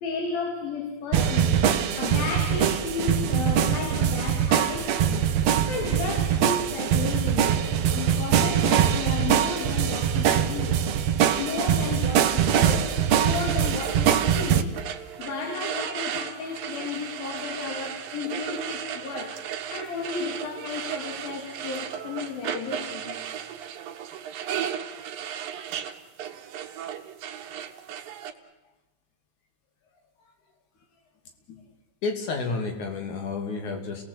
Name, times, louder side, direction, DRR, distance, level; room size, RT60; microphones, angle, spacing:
voice 1, 0.0-5.3 5.7-7.6 7.9-10.8 11.4-13.0 13.2-14.7 15.2-23.2, left 5 dB, 85° left, 3 dB, 4.5 m, -33 dB
sound 1, 1.1-14.6, right 9 dB, 65° right, 1.9 m, -23 dB
sound 2, 12.2-28.3, right 9 dB, 85° right, 3.1 m, -35 dB
voice 2, 32.0-34.0, left 4 dB, 60° left, 5 dB, 3.9 m, -31 dB
29.5 x 19.0 x 8.4 m, 1.1 s
omnidirectional pair, 4.0 m